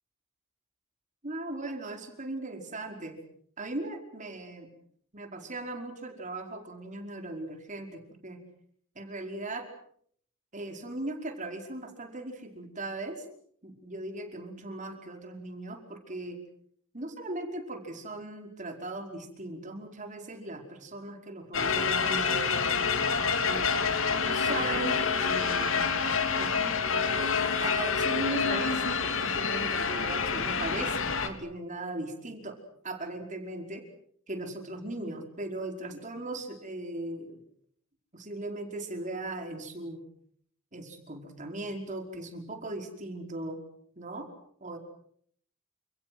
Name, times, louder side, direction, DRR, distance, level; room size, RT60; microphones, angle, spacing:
voice 1, 1.2-3.2 3.6-4.7 5.1-8.4 8.9-9.7 10.5-13.2 13.6-16.4 16.9-22.7 23.4-23.7 24.1-25.9 26.4-32.6 32.8-33.8 34.3-37.4 38.1-40.0 40.7-43.6 43.9-44.3 44.6-44.8, right 2 dB, 35° right, 4 dB, 5.1 m, -38 dB
sound 1, 21.5-31.3, left 5 dB, 65° left, 3.2 m, -27 dB
29.5 x 28.0 x 6.2 m, 0.64 s
head